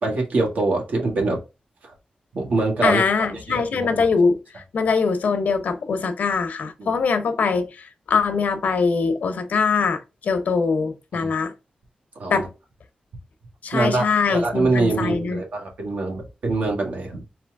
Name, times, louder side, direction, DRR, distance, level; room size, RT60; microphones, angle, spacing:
voice 1, 0.0-1.4 2.3-3.0 3.3-4.1 6.8-7.0 11.1-11.3 12.2-12.5 13.7-14.0 14.3-17.2, right 2 dB, 80° right, 1.8 m, -24 dB
voice 2, 2.8-4.4 4.7-11.5 12.3-12.5 13.6-15.4, left 5 dB, 80° left, 0.8 m, -22 dB
4.3 x 3.0 x 3.5 m
wide cardioid pair, 130°, 3 cm